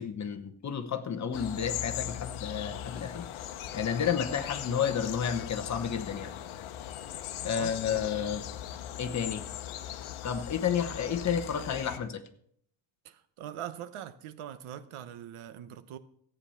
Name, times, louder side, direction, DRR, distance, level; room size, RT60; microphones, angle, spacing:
voice 1, 0.0-3.3 3.7-6.3 7.4-8.5 9.0-9.5 10.2-12.2, left 7 dB, 35° left, 1.0 m, -31 dB
sound 1, 1.3-12.0, left 11 dB, 70° left, 1.0 m, -39 dB
voice 2, 7.4-8.1 13.0-16.0, right 10 dB, 75° right, 1.1 m, -42 dB
14.5 x 8.8 x 5.7 m
cardioid pair, 180°, 50 cm